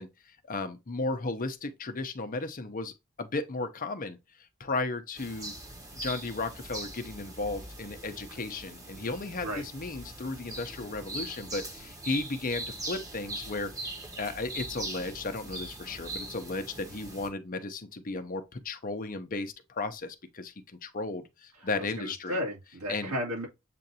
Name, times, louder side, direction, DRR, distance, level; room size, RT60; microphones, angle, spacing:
voice 1, 0.0-4.2 4.6-5.5 5.9-13.7 14.2-20.5 20.8-22.4 22.9-23.1, left 3 dB, 40° left, 0.7 m, -35 dB
sound 1, 5.1-17.3, right 1 dB, 15° right, 1.0 m, -41 dB
voice 2, 22.0-23.5, equal, 85° right, 2.2 m, -33 dB
7.5 x 2.6 x 2.7 m
head